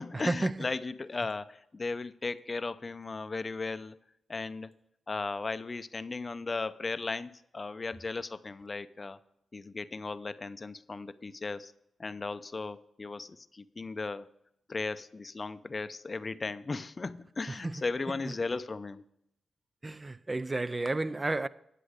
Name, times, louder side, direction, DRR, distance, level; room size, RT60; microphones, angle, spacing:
voice 1, 0.0-4.0 4.3-4.7 5.1-9.2 9.5-11.7 12.0-14.3 14.7-19.0, left 3 dB, 40° left, 0.5 m, -36 dB
voice 2, 19.8-21.5, right 2 dB, 30° right, 0.4 m, -31 dB
10.0 x 7.6 x 4.9 m
cardioid pair, 60°, 0 cm